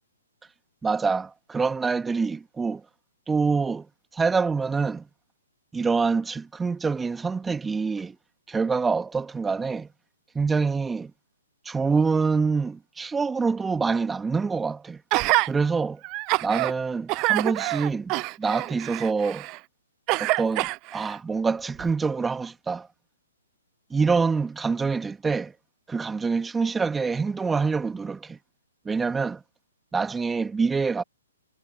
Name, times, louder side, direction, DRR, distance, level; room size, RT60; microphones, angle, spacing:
voice 1, 0.8-2.8 3.3-3.9 4.1-5.0 5.7-8.2 8.5-9.9 10.4-11.1 11.7-15.0 15.5-16.0 16.4-19.5 20.2-22.9 23.9-25.5 25.9-28.4 28.9-29.4 29.9-31.0, right 4 dB, 10° right, 2.1 m, -26 dB
Gasp, 15.1-15.5 16.0-16.7 17.1-19.6 20.1-21.2 21.8-21.9, right 24 dB, 30° right, 0.7 m, -26 dB
figure-of-eight pair, 125°, 0 cm